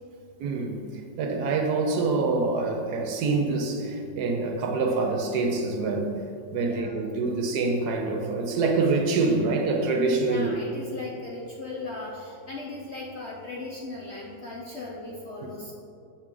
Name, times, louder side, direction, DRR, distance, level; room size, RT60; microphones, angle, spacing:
voice 1, 0.4-0.8 1.2-6.2 6.5-10.5, right 3 dB, 65° right, 3 dB, 1.2 m, -25 dB
voice 2, 6.5-7.0 10.2-15.7, left 3 dB, 55° left, -4 dB, 0.8 m, -38 dB
7.3 x 6.3 x 3.7 m, 2.6 s
omnidirectional pair, 2.0 m